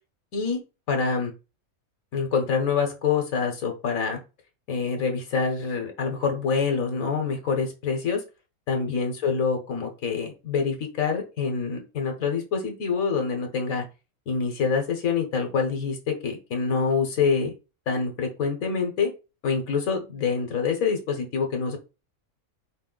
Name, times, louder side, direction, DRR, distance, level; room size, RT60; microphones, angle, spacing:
voice 1, 0.9-1.3 2.1-4.2 4.7-8.2 8.7-13.8 14.3-17.5 17.9-19.1 19.4-21.8, left 5 dB, 75° left, 4 dB, 1.5 m, -26 dB
5.0 x 2.6 x 3.8 m, 0.29 s
omnidirectional pair, 1.5 m